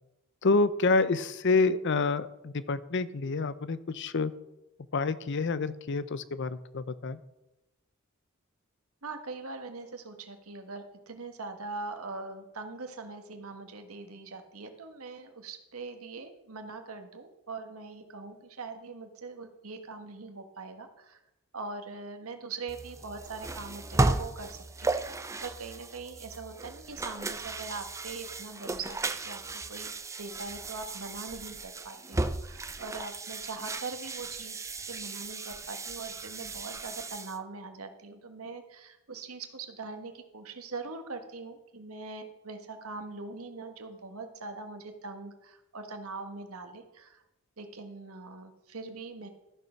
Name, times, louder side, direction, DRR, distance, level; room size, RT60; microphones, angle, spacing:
voice 1, 0.4-4.3 4.9-7.2, left 3 dB, 55° left, 15 dB, 0.6 m, -28 dB
voice 2, 9.0-21.2 21.5-29.9 30.2-47.2 47.6-49.3, right 3 dB, 90° right, 6 dB, 1.5 m, -42 dB
sound 1, 22.7-37.4, right 2 dB, 15° right, 0.5 m, -35 dB
13.5 x 6.7 x 5.8 m, 0.94 s
head